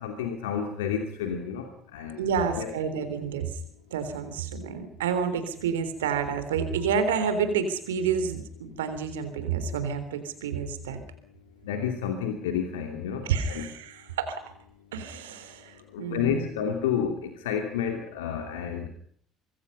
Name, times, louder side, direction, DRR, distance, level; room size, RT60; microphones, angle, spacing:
voice 1, 0.0-1.7 1.9-2.2 2.5-2.7 11.7-13.7 15.9-18.9, left 8 dB, 75° left, 5 dB, 2.8 m, -30 dB
voice 2, 2.2-3.5 3.9-11.0 13.2-14.4 14.9-16.5, right 6 dB, 75° right, 10 dB, 3.6 m, -29 dB
25.5 x 21.5 x 5.6 m, 0.62 s
figure-of-eight pair, 60°, 0 cm